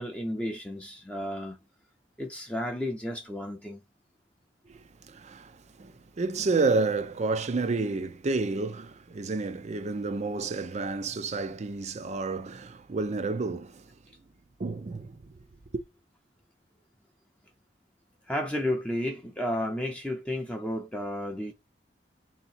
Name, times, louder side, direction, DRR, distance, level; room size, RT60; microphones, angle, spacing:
voice 1, 0.0-1.6 2.2-3.8 18.3-21.5, left 1 dB, 5° left, 0.6 m, -32 dB
voice 2, 4.7-13.9 14.6-15.4 15.7-15.8, right 3 dB, 40° right, 0.5 m, -30 dB
3.8 x 2.9 x 4.2 m
head